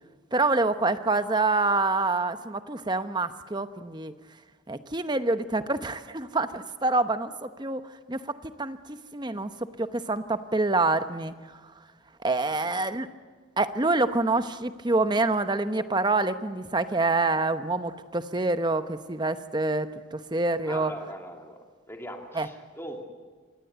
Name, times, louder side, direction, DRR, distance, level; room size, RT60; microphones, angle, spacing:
voice 1, 0.3-4.1 4.7-7.8 8.1-9.5 9.8-11.3 12.2-13.1 13.6-19.9 20.3-20.9 22.4-22.5, right 3 dB, 20° right, 10 dB, 0.9 m, -26 dB
voice 2, 12.5-13.0 20.6-21.6 21.9-23.0, equal, 10° left, 2 dB, 2.8 m, -41 dB
26.5 x 18.0 x 8.1 m, 1.5 s
head